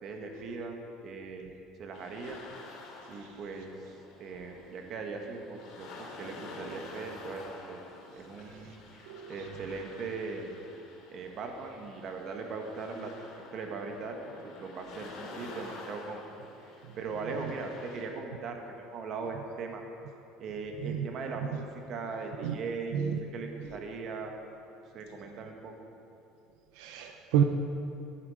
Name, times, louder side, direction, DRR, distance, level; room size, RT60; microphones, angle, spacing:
voice 1, 0.0-1.5 1.8-2.4 3.1-3.7 4.2-5.9 6.2-7.8 8.1-10.6 11.1-13.1 13.5-16.2 16.6-19.8 20.4-23.0 23.3-24.3 24.9-25.9, right 4 dB, 45° right, 3 dB, 1.6 m, -39 dB
sound 1, 1.9-18.0, left 3 dB, 60° left, 2.9 m, -49 dB
voice 2, 9.1-9.5 17.4-17.5 20.8-21.1 21.4-21.6 22.4-22.6 22.9-23.2 23.6-23.7 26.7-27.4, right 9 dB, 80° right, 5 dB, 0.7 m, -31 dB
14.0 x 10.5 x 5.0 m, 2.7 s
cardioid pair, 145°, 0 cm